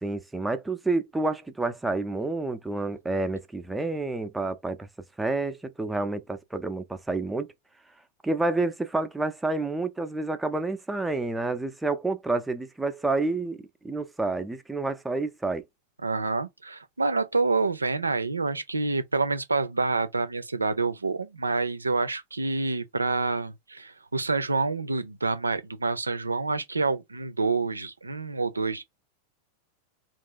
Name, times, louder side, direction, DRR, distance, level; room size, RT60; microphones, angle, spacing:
voice 1, 0.0-4.9 5.2-7.5 8.2-13.6 13.8-15.6, right 2 dB, 5° right, 0.5 m, -29 dB
voice 2, 16.0-28.8, right 3 dB, 80° right, 0.5 m, -27 dB
3.0 x 2.5 x 3.8 m
figure-of-eight pair, 90°, 0 cm